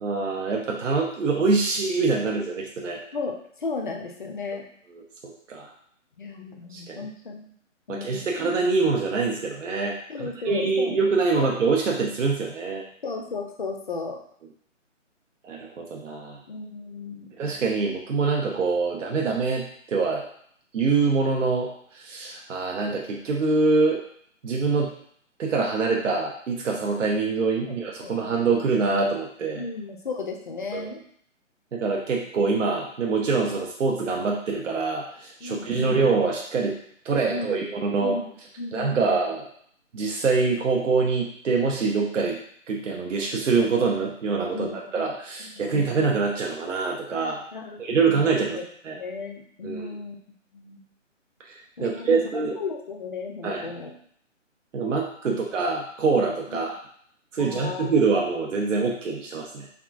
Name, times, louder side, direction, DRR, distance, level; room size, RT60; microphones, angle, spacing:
voice 1, 0.0-3.0 4.9-5.0 5.5-5.7 6.7-7.0 7.9-12.8 15.4-16.4 17.4-20.3 20.7-24.0 24.4-24.9 25.4-29.6 30.7-30.9 31.7-36.8 37.0-38.2 38.7-39.5 39.9-42.4 42.7-47.4 47.8-49.0 49.6-50.0 51.5-52.6 53.4-53.7 54.7-56.8 57.3-59.7, right 4 dB, 75° right, 0 dB, 0.6 m, -25 dB
voice 2, 3.1-4.7 6.2-7.5 7.9-8.3 10.1-11.0 11.3-11.5 13.0-14.2 16.5-17.3 27.6-28.1 29.5-31.0 35.4-36.0 37.3-37.6 38.0-38.3 38.6-39.2 44.5-45.0 45.6-45.9 47.5-48.6 48.9-50.2 50.5-50.8 51.8-52.2 52.6-53.9 56.5-56.6 57.4-58.0, left 4 dB, 40° left, 2 dB, 0.4 m, -35 dB
3.6 x 2.3 x 2.4 m, 0.62 s
figure-of-eight pair, 150°, 38 cm